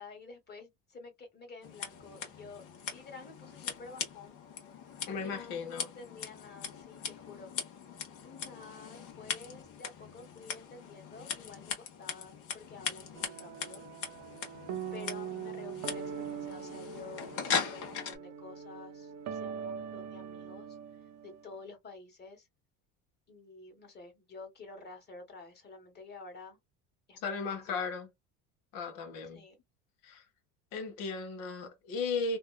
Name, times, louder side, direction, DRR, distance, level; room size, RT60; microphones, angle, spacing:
voice 1, 0.0-2.6 2.9-4.4 5.1-7.5 8.2-13.9 14.9-20.7 21.2-22.5 23.3-26.6 27.1-27.8 29.3-29.5, left 4 dB, 30° left, 1.5 m, -50 dB
Scissors, 1.6-18.2, left 7 dB, 55° left, 1.1 m, -40 dB
voice 2, 5.1-5.9 27.2-28.1 28.7-29.5 30.0-30.2 30.7-32.4, left 4 dB, 75° left, 1.2 m, -36 dB
sound 1, 13.1-21.5, right 7 dB, 50° right, 0.7 m, -42 dB
2.8 x 2.3 x 2.2 m
supercardioid pair, 110°, 36 cm